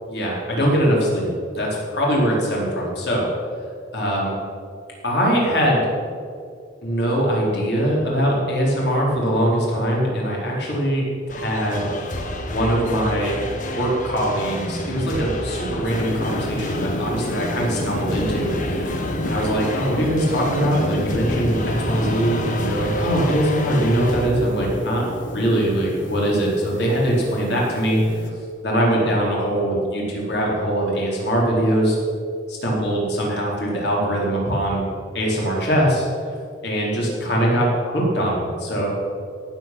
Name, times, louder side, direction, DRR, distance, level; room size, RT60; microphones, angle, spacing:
voice 1, 0.1-3.3 3.9-4.4 5.0-5.9 6.8-11.0 11.3-11.9 12.5-13.4 13.7-19.0 19.3-25.0 25.3-28.0 28.6-32.0 32.5-34.8 35.1-36.1 36.6-38.9, equal, 60° left, -3 dB, 4.3 m, -22 dB
sound 1, 11.3-24.3, left 1 dB, 40° left, 1.4 m, -30 dB
sound 2, 15.9-28.3, left 1 dB, 80° left, 1.4 m, -31 dB
17.5 x 8.4 x 6.2 m, 2.3 s
head